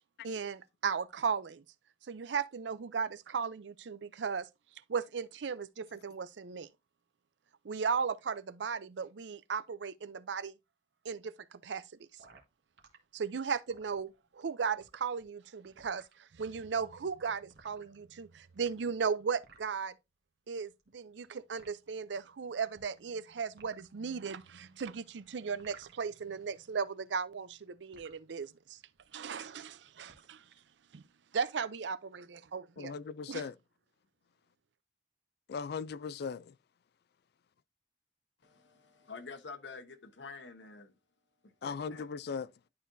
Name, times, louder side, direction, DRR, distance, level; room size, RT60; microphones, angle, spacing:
voice 1, 0.2-1.6 2.1-4.5 4.9-6.7 7.6-10.6 11.0-11.8 13.1-19.9 20.5-28.8 29.1-30.4 30.9-31.0 31.3-32.9 33.3-33.4, right 6 dB, 85° right, 0.5 m, -36 dB
sound 1, 12.2-13.0 13.5-14.4 14.7-16.1 16.8-17.0 17.5-18.2 18.5-19.8 20.7-21.3 21.6-21.7 22.7-23.2 23.5-24.0 24.8-26.4 26.7-28.2 28.8-29.0 29.3-29.6 29.9-30.6, right 4 dB, 70° right, 1.5 m, -59 dB
voice 2, 32.8-33.6 35.5-36.5 41.6-42.5, left 5 dB, 65° left, 0.4 m, -38 dB
voice 3, 38.4-41.0 41.4-42.1, left 4 dB, 85° left, 1.0 m, -48 dB
11.0 x 4.3 x 2.6 m
head